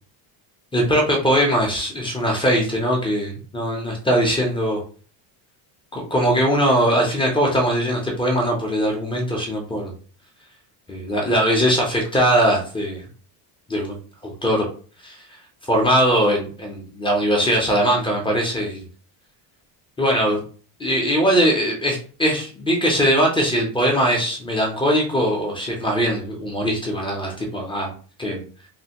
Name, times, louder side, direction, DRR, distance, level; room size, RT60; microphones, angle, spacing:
voice 1, 0.7-4.8 5.9-9.9 10.9-13.1 13.7-14.0 14.2-14.7 15.0-15.2 15.7-18.8 20.0-20.4 20.8-27.9 28.2-28.4, equal, 10° left, 0 dB, 0.3 m, -21 dB
3.2 x 2.4 x 2.8 m, 0.40 s
cardioid pair, 160°, 47 cm